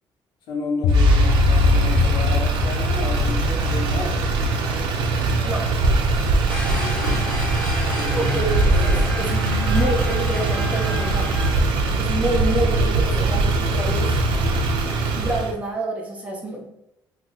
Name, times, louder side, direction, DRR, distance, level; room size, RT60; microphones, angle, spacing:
voice 1, 0.5-4.2 6.4-7.2 8.0-8.3 8.7-9.1, left 2 dB, 65° left, 0 dB, 0.9 m, -31 dB
sound 1, 0.8-5.2, left 2 dB, 50° left, 0.3 m, -20 dB
Motor vehicle (road), 0.9-15.5, right 2 dB, 80° right, 0.5 m, -22 dB
sound 2, 6.5-11.5, equal, 10° left, 0.8 m, -32 dB
voice 2, 8.1-11.3 12.0-14.4 15.1-16.6, right 2 dB, 15° right, 0 dB, 0.5 m, -27 dB
2.9 x 2.2 x 3.8 m, 0.85 s
cardioid pair, 170°, 8 cm